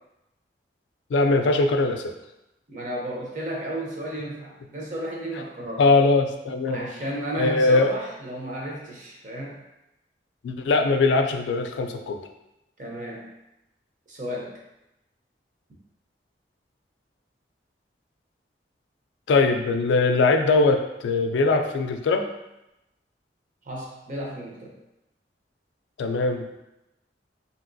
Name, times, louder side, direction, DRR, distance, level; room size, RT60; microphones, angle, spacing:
voice 1, 1.1-2.1 5.8-6.8 7.4-7.9 10.4-12.2 19.3-22.3 26.0-26.6, left 3 dB, 85° left, 6 dB, 0.3 m, -21 dB
voice 2, 2.7-5.8 6.7-9.6 12.8-13.3 14.1-14.6 23.6-24.8, right 1 dB, 45° right, -2 dB, 0.7 m, -33 dB
3.0 x 2.8 x 2.5 m, 0.91 s
head